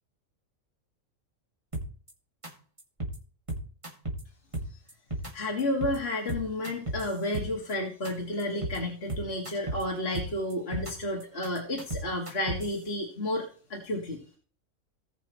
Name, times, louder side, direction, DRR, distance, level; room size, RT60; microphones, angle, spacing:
sound 1, 1.7-2.1 2.4-2.5 2.8-3.2 3.5-4.2 4.5-5.3 5.6-6.0 6.3-7.7 8.0-8.1 8.4-8.8 9.1-9.8 10.1-10.9 11.2-12.8, right 1 dB, 20° right, 2.1 m, -34 dB
voice 1, 5.3-13.4 13.7-14.2, left 1 dB, 45° left, -1 dB, 2.3 m, -31 dB
18.5 x 6.1 x 3.1 m, 0.41 s
omnidirectional pair, 1.5 m